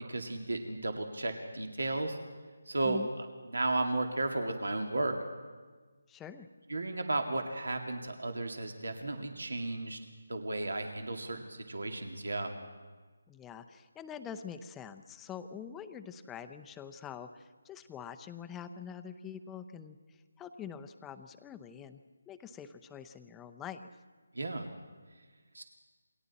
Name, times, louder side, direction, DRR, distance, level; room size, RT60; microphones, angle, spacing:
voice 1, 0.1-2.2 2.7-3.2 3.5-5.1 6.7-10.0 10.3-12.5 24.3-24.7 25.5-25.6, right 2 dB, 85° right, 4 dB, 2.2 m, -34 dB
voice 2, 6.1-6.5 13.3-23.9, left 8 dB, 10° left, 8 dB, 0.7 m, -45 dB
28.0 x 23.0 x 4.2 m, 1.4 s
figure-of-eight pair, 165°, 0 cm